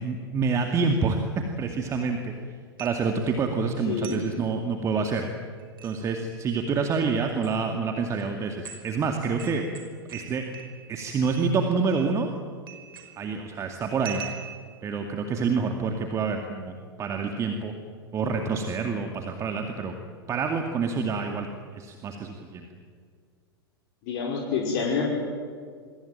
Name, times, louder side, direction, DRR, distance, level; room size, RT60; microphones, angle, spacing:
voice 1, 0.0-2.3 2.8-5.3 5.8-9.6 10.1-10.5 10.9-12.3 13.2-14.2 14.8-17.7 18.1-20.0 20.3-21.5 21.7-22.7, right 4 dB, 25° right, 4 dB, 2.3 m, -27 dB
sound 1, 2.8-3.3 4.0-4.3 5.6-6.0 7.3-7.5 8.2-8.3 8.6-8.9 9.4-10.9 11.2-11.6 11.9-12.4 12.7-13.3 14.0-14.8, right 9 dB, 60° right, 5.4 m, -42 dB
voice 2, 3.9-4.2 24.0-25.1, left 5 dB, 45° left, -2 dB, 5.5 m, -27 dB
28.0 x 23.0 x 9.0 m, 2.1 s
figure-of-eight pair, 95°, 13 cm